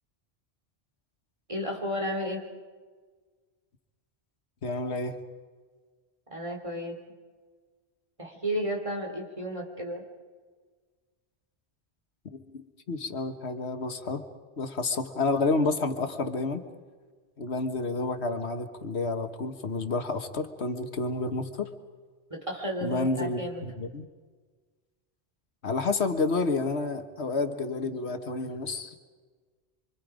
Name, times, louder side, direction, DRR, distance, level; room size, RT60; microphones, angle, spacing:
voice 1, 1.5-2.4 6.3-7.0 8.2-10.1 22.3-23.6, equal, 30° right, 1 dB, 3.6 m, -33 dB
voice 2, 4.6-5.2 12.3-12.6 12.9-14.2 14.6-16.6 17.4-21.7 22.8-24.1 25.6-28.9, left 3 dB, 75° left, 8 dB, 1.6 m, -30 dB
26.5 x 25.5 x 5.1 m, 1.5 s
omnidirectional pair, 1.1 m